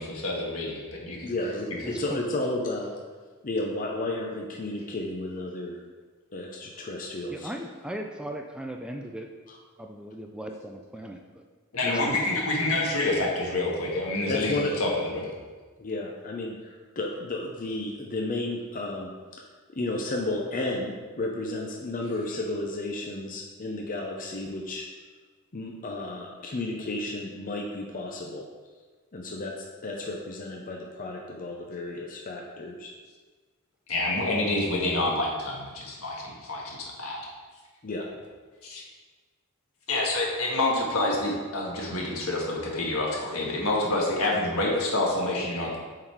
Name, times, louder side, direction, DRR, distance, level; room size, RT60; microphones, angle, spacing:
voice 1, 0.0-1.3 11.7-14.5 14.8-15.3 33.9-37.2 38.6-38.8 39.9-45.8, left 2 dB, 75° left, -2 dB, 1.7 m, -27 dB
voice 2, 1.2-2.9 3.4-5.8 6.3-7.5 11.8-12.2 14.3-14.8 15.8-19.4 19.7-24.9 25.5-28.5 29.1-32.9 37.8-38.0, left 2 dB, 40° left, 0 dB, 0.7 m, -32 dB
voice 3, 1.8-2.2 7.3-9.3 9.8-11.4 11.9-12.2, right 1 dB, 5° right, 3 dB, 0.4 m, -38 dB
7.7 x 4.0 x 4.6 m, 1.4 s
head